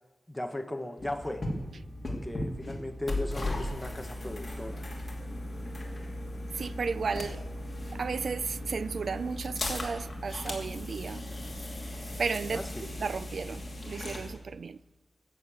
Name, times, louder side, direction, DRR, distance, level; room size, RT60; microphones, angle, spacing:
voice 1, 0.3-1.5 2.1-4.9 12.5-12.9, left 1 dB, 5° left, 0.9 m, -37 dB
sound 1, 0.7-1.1 1.5-1.8 2.2-3.7 4.0-4.7 5.2-9.3, right 1 dB, 30° right, 2.4 m, -55 dB
sound 2, 1.0-14.3, left 1 dB, 20° left, 2.5 m, -37 dB
voice 2, 6.6-7.4 7.9-11.3 12.2-14.8, right 5 dB, 65° right, 0.4 m, -34 dB
13.5 x 7.7 x 8.1 m
wide cardioid pair, 135°, 0 cm